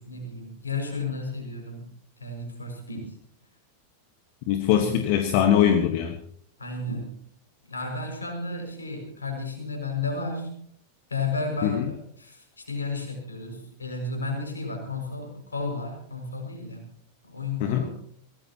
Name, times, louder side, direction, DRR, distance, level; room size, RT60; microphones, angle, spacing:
voice 1, 0.0-1.9 2.2-3.2 4.8-5.0 6.6-7.1 7.7-10.6 11.1-16.9 17.3-17.9, left 3 dB, 75° left, 3 dB, 6.2 m, -33 dB
voice 2, 4.5-6.2 11.6-11.8 17.6-17.9, left 9 dB, 45° left, 6 dB, 1.5 m, -22 dB
23.0 x 18.0 x 3.0 m, 0.65 s
figure-of-eight pair, 90°, 0 cm